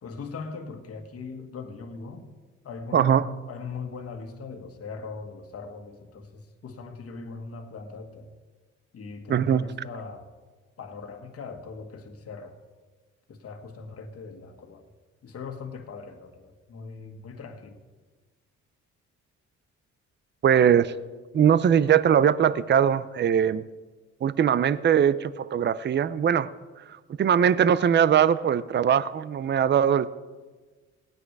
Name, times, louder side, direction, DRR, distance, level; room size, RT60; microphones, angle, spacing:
voice 1, 0.0-2.3 2.6-8.3 8.9-10.3 10.8-12.6 13.3-14.9 15.2-17.8, left 4 dB, 50° left, 5 dB, 1.7 m, -40 dB
voice 2, 2.9-3.3 9.3-9.6 20.4-20.9 21.3-23.7 24.2-26.5 27.2-30.1, right 8 dB, 35° right, 17 dB, 0.5 m, -21 dB
17.5 x 9.7 x 4.7 m, 1.3 s
cardioid pair, 90°, 30 cm